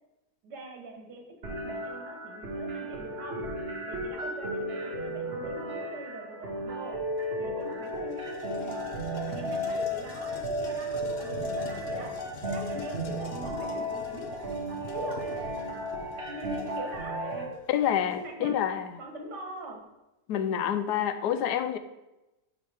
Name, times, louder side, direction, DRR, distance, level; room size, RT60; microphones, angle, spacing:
voice 1, 0.4-3.5 3.9-7.0 7.4-8.8 9.1-15.4 16.3-17.6 18.2-18.6 19.0-19.8, right 2 dB, 80° right, 1 dB, 2.1 m, -42 dB
sound 1, 1.4-17.4, equal, 40° right, 1.4 m, -34 dB
sound 2, 7.2-7.3 7.6-18.3, left 3 dB, 50° left, 0.8 m, -45 dB
voice 2, 17.7-18.9 20.3-21.8, left 9 dB, 80° left, 10 dB, 1.2 m, -27 dB
11.0 x 4.8 x 3.5 m, 0.99 s
omnidirectional pair, 1.8 m